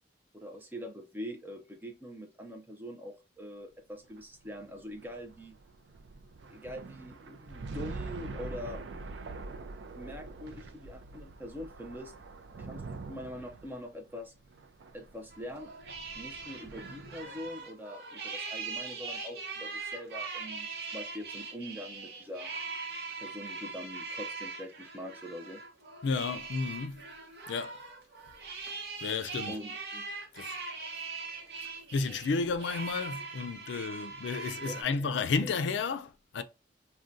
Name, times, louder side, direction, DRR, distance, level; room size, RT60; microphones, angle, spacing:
voice 1, 0.3-5.5 6.4-8.8 10.0-12.1 12.6-12.8 13.1-14.3 14.9-15.7 16.2-20.7 20.9-22.5 23.2-25.6 29.5-30.1 33.7-34.1 34.6-35.1 35.4-35.6, equal, 10° right, 0.5 m, -43 dB
sound 1, 4.0-17.6, right 3 dB, 80° right, 0.4 m, -45 dB
sound 2, 15.3-34.8, right 4 dB, 60° right, 0.8 m, -41 dB
voice 2, 26.0-27.0 27.5-27.8 29.0-29.6 30.3-30.6 31.9-36.4, left 4 dB, 85° left, 0.4 m, -32 dB
3.6 x 2.2 x 2.5 m
head